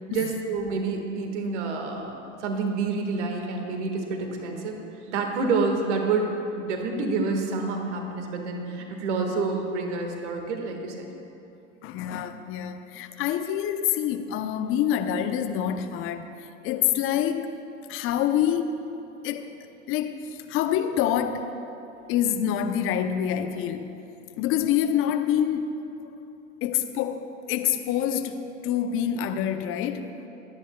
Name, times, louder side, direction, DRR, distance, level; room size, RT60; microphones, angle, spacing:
voice 1, 0.1-2.1 2.4-4.8 5.1-11.1, right 4 dB, 60° right, 3 dB, 1.7 m, -28 dB
voice 2, 11.8-16.3 16.6-17.5 17.9-18.7 19.2-19.5 19.9-21.6 22.1-23.9 24.4-25.8 26.6-30.2, left 9 dB, 35° left, 9 dB, 0.7 m, -26 dB
23.5 x 10.0 x 2.3 m, 2.8 s
figure-of-eight pair, 95°, 39 cm